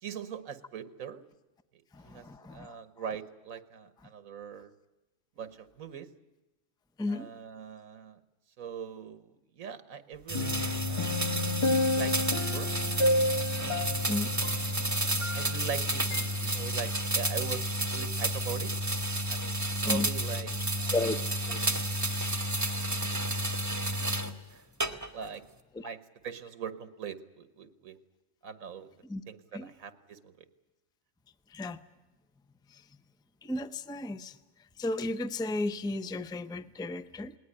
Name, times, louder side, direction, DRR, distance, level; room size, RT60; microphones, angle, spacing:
voice 1, 0.0-1.2 1.7-4.7 5.4-6.1 7.1-8.2 8.6-11.2 11.9-12.7 13.6-18.7 19.3-20.5 20.8-21.0 24.5-24.6 25.1-25.4 25.8-26.0 26.2-28.0 28.4-28.9 29.3-30.5, right 7 dB, 90° right, 11 dB, 1.6 m, -42 dB
voice 2, 1.9-2.8 7.0-7.3 14.1-14.3 19.8-20.1 20.9-21.2 21.5-21.6 25.7-25.9 29.0-29.2 29.5-29.7 31.5-31.8 32.7-32.9 33.4-34.4 34.8-37.4, left 2 dB, 5° left, 12 dB, 0.3 m, -34 dB
sound 1, 10.3-15.8 16.1-16.3, left 2 dB, 25° left, 1.1 m, -31 dB
sound 2, 10.3-24.3 24.8-25.3, right 1 dB, 15° right, 1.0 m, -31 dB
19.5 x 19.0 x 9.9 m, 1.1 s
omnidirectional pair, 1.4 m